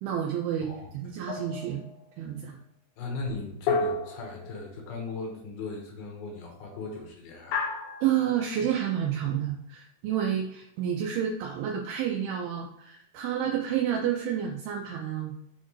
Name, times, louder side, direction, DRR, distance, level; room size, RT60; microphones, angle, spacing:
voice 1, 0.0-0.7 1.0-1.8 2.2-2.6 8.0-15.3, right 9 dB, 80° right, 1 dB, 2.3 m, -29 dB
voice 2, 0.6-1.2 3.0-7.6, left 3 dB, 70° left, 1 dB, 2.7 m, -38 dB
sound 1, 1.3-1.9 3.7-5.0 7.5-8.4, left 3 dB, 90° left, 2.9 m, -31 dB
7.0 x 4.3 x 3.1 m, 0.78 s
omnidirectional pair, 4.9 m